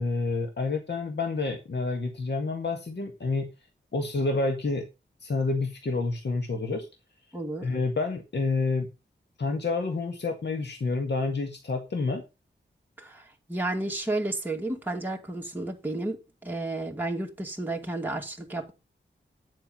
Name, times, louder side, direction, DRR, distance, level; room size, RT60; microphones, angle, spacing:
voice 1, 0.0-3.5 3.9-4.8 5.2-6.9 7.6-8.9 9.4-12.2, left 3 dB, 65° left, 1.9 m, -28 dB
voice 2, 7.3-7.7 13.0-18.7, right 2 dB, 10° right, 2.3 m, -32 dB
10.5 x 7.6 x 5.4 m
wide cardioid pair, 90°, 19 cm